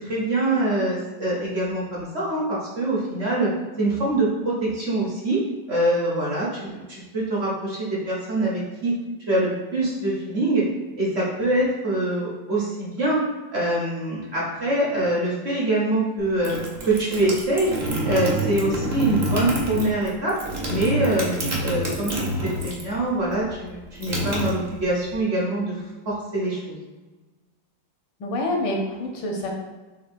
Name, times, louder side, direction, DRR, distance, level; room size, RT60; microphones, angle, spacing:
voice 1, 0.0-3.5 3.8-5.4 5.7-8.9 9.3-10.6 11.0-13.2 13.5-16.6 16.8-17.7 18.0-20.3 20.7-21.3 21.6-22.3 22.6-26.8, right 1 dB, 45° right, -5 dB, 0.9 m, -24 dB
sound 1, 16.2-23.0 23.2-25.1, right 1 dB, 85° right, 0.3 m, -27 dB
voice 2, 28.2-29.5, left 1 dB, 85° left, 0 dB, 1.5 m, -27 dB
6.4 x 2.3 x 2.6 m, 1.2 s
omnidirectional pair, 1.9 m